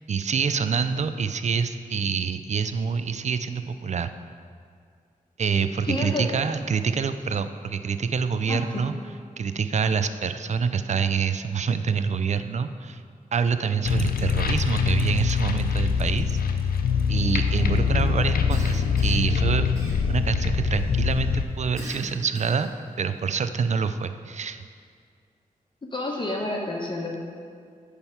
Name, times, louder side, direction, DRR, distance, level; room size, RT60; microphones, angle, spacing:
voice 1, 0.1-4.1 5.4-8.9 9.4-13.0 13.3-16.4 17.1-19.7 20.1-22.7 23.0-24.6, right 6 dB, 50° right, 11 dB, 0.4 m, -26 dB
voice 2, 5.8-6.3 8.5-8.6 25.9-27.1, left 2 dB, 30° left, -1 dB, 1.1 m, -29 dB
sound 1, 13.8-21.4, left 6 dB, 85° left, 0.5 m, -24 dB
Cough, 18.5-19.3 19.8-20.4 21.8-22.8, right 1 dB, 20° right, 2.0 m, -40 dB
8.8 x 3.5 x 5.7 m, 2.2 s
cardioid pair, 50°, 15 cm